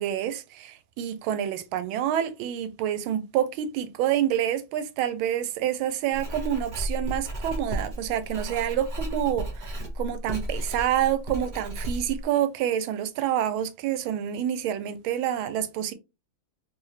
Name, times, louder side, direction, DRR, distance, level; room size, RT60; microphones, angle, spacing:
voice 1, 0.0-15.9, right 10 dB, 75° right, 1.3 m, -28 dB
Writing, 6.1-12.2, right 1 dB, 50° right, 0.5 m, -33 dB
3.4 x 2.9 x 3.2 m
omnidirectional pair, 2.4 m